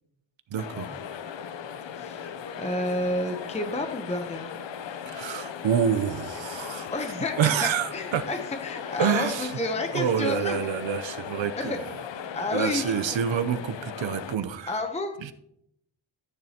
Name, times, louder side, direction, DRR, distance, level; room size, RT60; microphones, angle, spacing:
voice 1, 0.5-0.9 5.1-6.9 7.4-8.2 9.0-9.5 9.9-11.8 12.5-14.7 15.2-15.3, right 8 dB, 80° right, 10 dB, 0.7 m, -27 dB
sound 1, 0.6-14.4, left 8 dB, 70° left, 0.7 m, -38 dB
voice 2, 1.9-4.5 6.9-10.7 11.6-11.8 12.3-13.0 14.7-15.2, left 2 dB, 15° left, 5 dB, 0.7 m, -30 dB
13.5 x 9.5 x 2.9 m, 0.77 s
wide cardioid pair, 155°, 45 cm